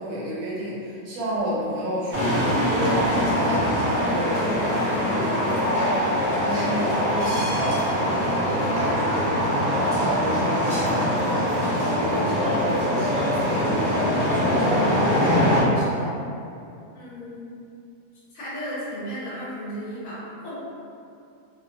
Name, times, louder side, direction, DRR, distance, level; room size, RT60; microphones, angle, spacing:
voice 1, 0.0-9.4 9.7-16.2, equal, 70° right, -7 dB, 1.0 m, -30 dB
sound 1, 2.1-15.6, equal, 30° right, 0.4 m, -23 dB
voice 2, 16.9-17.6 18.3-20.5, equal, 70° left, -8 dB, 1.2 m, -35 dB
2.8 x 2.1 x 2.6 m, 2.5 s
omnidirectional pair, 1.6 m